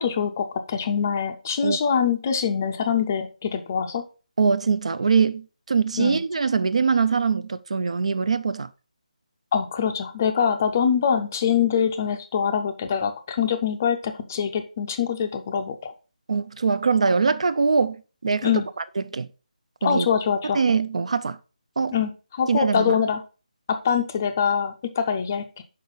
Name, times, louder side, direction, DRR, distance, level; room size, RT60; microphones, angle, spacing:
voice 1, 0.0-4.1 6.0-6.2 9.5-15.9 18.4-18.7 19.8-20.6 21.9-23.2 23.7-25.6, left 7 dB, 20° left, 0.5 m, -24 dB
voice 2, 4.4-8.7 16.3-18.5 19.0-19.3 19.8-20.1 20.5-21.4 21.8-22.0 22.5-23.0, right 5 dB, 50° right, 0.4 m, -22 dB
5.6 x 5.1 x 3.8 m
figure-of-eight pair, 170°, 4 cm